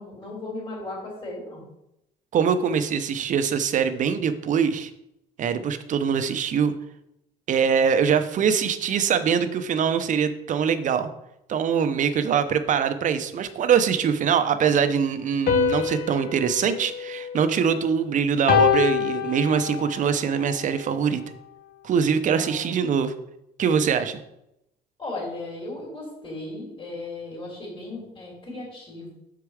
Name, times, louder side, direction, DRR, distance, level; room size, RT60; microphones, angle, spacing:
voice 1, 0.0-1.6 22.2-22.7 25.0-29.1, left 2 dB, 30° left, -5 dB, 3.1 m, -36 dB
voice 2, 2.3-4.9 5.4-6.7 7.5-11.1 11.5-21.2 21.8-23.1 23.6-24.2, right 7 dB, 50° right, 9 dB, 0.7 m, -23 dB
sound 1, 15.5-17.9 18.5-20.0, left 8 dB, 60° left, 1.0 m, -25 dB
6.7 x 4.8 x 4.8 m, 0.83 s
cardioid pair, 110°, 17 cm